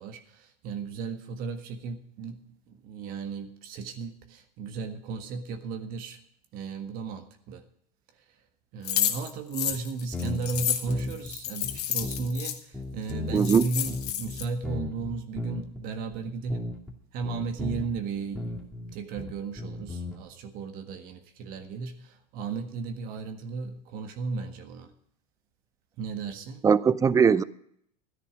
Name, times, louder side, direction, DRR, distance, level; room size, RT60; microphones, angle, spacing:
voice 1, 0.0-2.4 2.7-6.2 6.5-7.6 8.7-16.7 17.1-24.9 26.0-26.6, right 4 dB, 45° right, 1.6 m, -35 dB
sound 1, 8.8-12.6 13.1-13.2 13.4-14.4, left 10 dB, 75° left, 1.6 m, -30 dB
sound 2, 9.7-9.8 10.1-11.3 11.6-12.4 12.7-15.8 16.1-17.0 17.2-18.0 18.4-20.2, left 3 dB, 5° left, 2.5 m, -36 dB
voice 2, 13.3-13.6 26.6-27.4, right 6 dB, 15° right, 0.6 m, -20 dB
13.5 x 10.0 x 5.1 m
hypercardioid pair, 100°, 20 cm